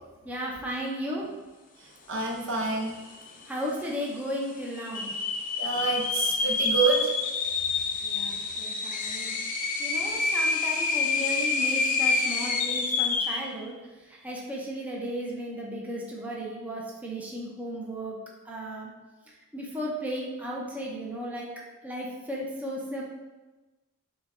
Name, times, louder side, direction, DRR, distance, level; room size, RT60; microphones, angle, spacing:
voice 1, 0.2-1.3 3.4-5.1 8.0-9.4 9.8-13.8 14.0-18.2 18.4-18.9 19.3-21.5 21.8-23.0, equal, 5° right, -4 dB, 0.5 m, -35 dB
voice 2, 2.1-2.9 5.6-7.1, right 4 dB, 60° right, 0 dB, 0.8 m, -27 dB
sound 1, 2.5-2.6 2.8-3.4 3.9-4.0 4.7-13.5, left 4 dB, 40° left, 0.5 m, -27 dB
5.7 x 2.2 x 3.6 m, 1.2 s
head